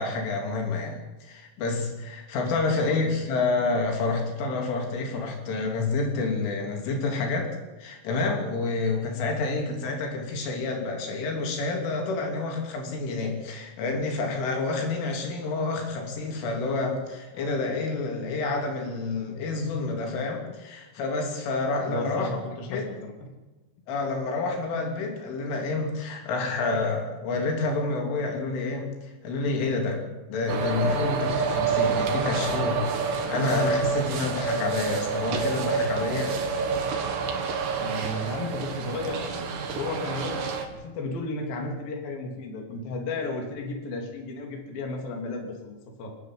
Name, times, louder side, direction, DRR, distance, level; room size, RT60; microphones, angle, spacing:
voice 1, 0.0-7.5 7.8-22.3 22.7-22.9 23.9-30.0 30.3-36.3, left 3 dB, 80° left, 2 dB, 5.6 m, -28 dB
voice 2, 2.7-3.0 21.9-23.1 37.8-40.4 40.7-46.1, left 2 dB, 50° left, 1 dB, 4.5 m, -34 dB
sound 1, 30.5-40.7, right 5 dB, 65° right, 4.2 m, -28 dB
28.5 x 9.9 x 9.6 m, 1.1 s
omnidirectional pair, 5.5 m